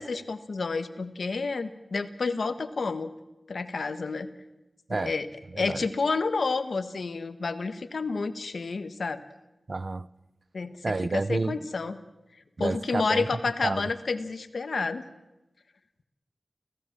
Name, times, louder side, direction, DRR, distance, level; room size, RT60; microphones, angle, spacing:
voice 1, 0.0-3.1 3.5-4.3 4.9-5.3 5.6-9.2 10.5-12.0 12.6-15.0, left 4 dB, 90° left, 1.5 m, -30 dB
voice 2, 9.7-10.1 10.8-11.6 12.6-13.3 13.6-13.9, right 3 dB, 55° right, 0.8 m, -29 dB
29.5 x 17.0 x 7.5 m
wide cardioid pair, 75°, 0 cm